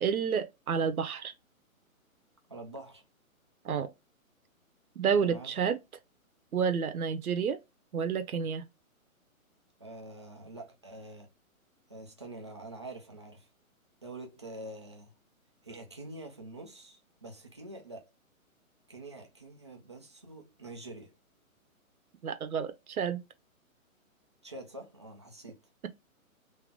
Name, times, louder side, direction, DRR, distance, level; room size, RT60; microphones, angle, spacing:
voice 1, 0.0-1.3 3.6-3.9 5.0-5.8 6.5-7.6 7.9-8.7 22.2-23.2, right 6 dB, 90° right, 0.9 m, -30 dB
voice 2, 2.5-3.0 5.2-5.5 9.8-11.3 11.9-13.5 14.0-15.1 15.6-18.1 18.9-21.1 24.4-25.6, right 2 dB, 20° right, 0.5 m, -46 dB
3.7 x 2.9 x 3.5 m
hypercardioid pair, 165°, 42 cm